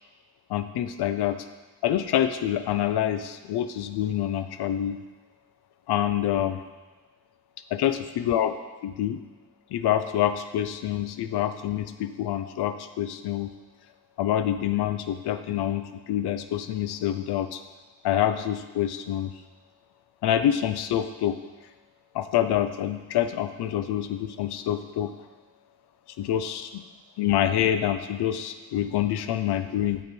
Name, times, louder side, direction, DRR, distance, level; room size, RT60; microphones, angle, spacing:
voice 1, 0.5-1.5 1.8-5.0 5.9-6.6 7.7-8.5 8.8-9.2 9.7-13.5 14.2-17.6 18.0-19.3 20.2-21.4 22.1-25.1 26.2-26.8 27.2-30.0, left 11 dB, 80° left, 10 dB, 0.6 m, -26 dB
6.8 x 6.6 x 4.4 m, 1.2 s
supercardioid pair, 45°, 39 cm